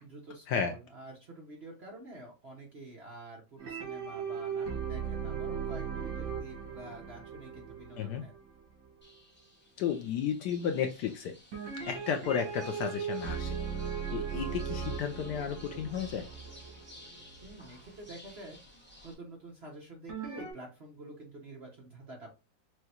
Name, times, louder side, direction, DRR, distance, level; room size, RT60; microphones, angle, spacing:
voice 1, 0.0-8.3 17.4-18.6 19.0-22.3, right 2 dB, 45° right, -1 dB, 0.8 m, -48 dB
sound 1, 3.6-8.9 11.5-17.5 20.1-20.5, right 6 dB, 80° right, 2.2 m, -38 dB
sound 2, 9.0-19.1, left 1 dB, 10° left, 0.5 m, -54 dB
voice 2, 9.8-11.3 11.9-13.6 14.1-16.3, left 7 dB, 75° left, 5 dB, 1.0 m, -33 dB
6.2 x 2.2 x 2.8 m, 0.30 s
omnidirectional pair, 2.1 m